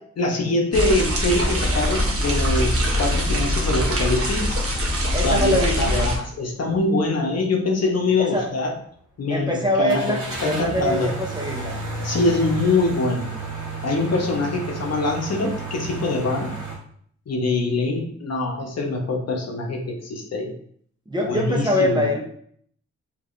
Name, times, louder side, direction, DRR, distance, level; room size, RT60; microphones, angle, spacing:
voice 1, 0.2-4.6 5.2-8.7 9.2-11.1 12.0-13.3 13.8-16.5 17.3-20.5 21.2-22.1, left 2 dB, 55° left, 1 dB, 0.9 m, -24 dB
sound 1, 0.7-6.2, equal, 50° right, 0.9 m, -22 dB
voice 2, 5.1-6.1 8.2-8.5 9.3-11.8 21.1-22.2, equal, 15° right, -1 dB, 0.6 m, -24 dB
sound 2, 6.6-6.8 7.3-7.4 9.9-16.7, right 3 dB, 80° right, 1.3 m, -32 dB
4.6 x 3.0 x 2.5 m, 0.62 s
wide cardioid pair, 110°, 30 cm